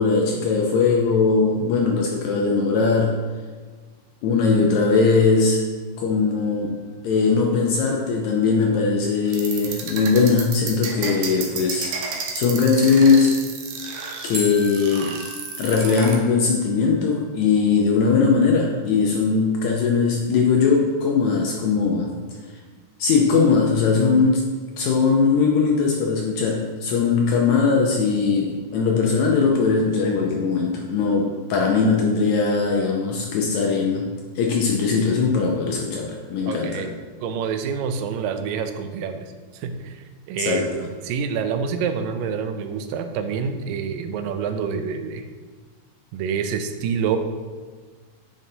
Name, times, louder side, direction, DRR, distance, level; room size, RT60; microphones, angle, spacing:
voice 1, 0.0-3.2 4.2-5.6 6.0-6.8 7.0-12.0 12.3-13.3 14.2-15.2 15.6-22.1 23.0-24.5 24.8-34.1 34.3-36.8 40.4-40.7, left 4 dB, 80° left, 0 dB, 1.7 m, -20 dB
sound 1, 6.3-7.3 14.3-17.3, left 1 dB, 50° right, 0.8 m, -38 dB
sound 2, 9.3-16.2, right 5 dB, 70° right, 1.7 m, -31 dB
voice 2, 36.5-45.2 46.1-47.2, right 6 dB, 90° right, 8 dB, 2.3 m, -27 dB
9.2 x 5.4 x 2.7 m, 1.4 s
omnidirectional pair, 3.8 m